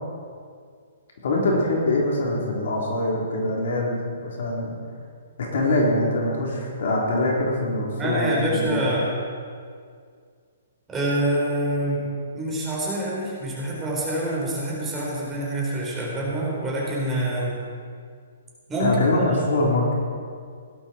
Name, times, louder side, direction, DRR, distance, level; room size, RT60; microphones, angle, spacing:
voice 1, 1.2-4.7 5.4-8.8 18.8-19.9, left 2 dB, 65° left, -2 dB, 3.7 m, -23 dB
voice 2, 8.0-9.1 10.9-17.6 18.7-19.4, right 1 dB, 15° right, -4 dB, 4.5 m, -26 dB
17.0 x 12.0 x 4.5 m, 2.1 s
hypercardioid pair, 130°, 0 cm